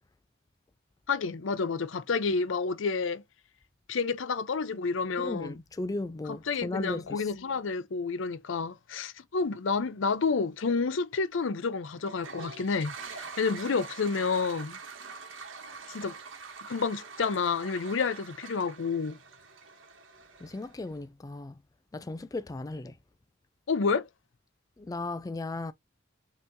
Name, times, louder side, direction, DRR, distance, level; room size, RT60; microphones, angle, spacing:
voice 1, 1.1-3.2 3.9-5.5 6.5-14.8 15.9-16.1 16.6-19.2 23.7-24.1, left 4 dB, 75° left, 0.6 m, -29 dB
voice 2, 5.2-7.3 20.4-21.6 21.9-23.0 24.8-25.7, left 2 dB, 20° left, 0.3 m, -36 dB
Toilet flush, 12.0-20.9, right 5 dB, 85° right, 1.3 m, -45 dB
5.5 x 3.0 x 2.6 m
head